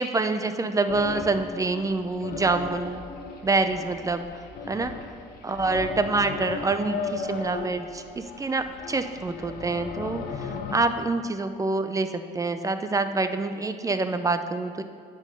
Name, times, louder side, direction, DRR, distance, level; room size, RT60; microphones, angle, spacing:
voice 1, 0.0-3.0 3.4-4.9 5.4-14.8, right 3 dB, 20° right, 9 dB, 0.5 m, -26 dB
sound 1, 0.9-10.8, left 4 dB, 70° left, 1.1 m, -36 dB
10.5 x 5.4 x 6.6 m, 2.2 s
cardioid pair, 110°, 17 cm